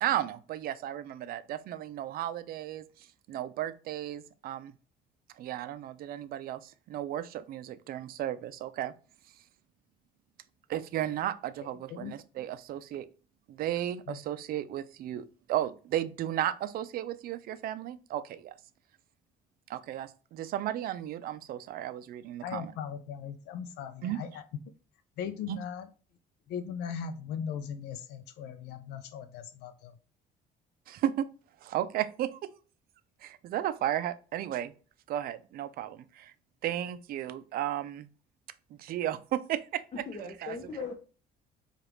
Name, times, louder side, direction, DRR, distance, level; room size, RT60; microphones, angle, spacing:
voice 1, 0.0-2.8 3.3-4.7 5.4-8.9 10.7-13.0 13.5-18.5 19.7-22.7 24.0-24.2 25.5-25.6 30.9-31.3 31.6-32.5 33.2-34.7 35.1-36.3 36.6-38.1 38.8-39.8 40.2-40.5, right 12 dB, 60° right, 0.4 m, -34 dB
voice 2, 11.6-12.1 14.1-14.2 22.4-24.4 25.2-25.9 26.5-29.9, left 7 dB, 80° left, 0.5 m, -39 dB
voice 3, 39.9-40.9, left 4 dB, 35° left, 0.8 m, -39 dB
4.9 x 2.4 x 3.0 m
cardioid pair, 110°, 17 cm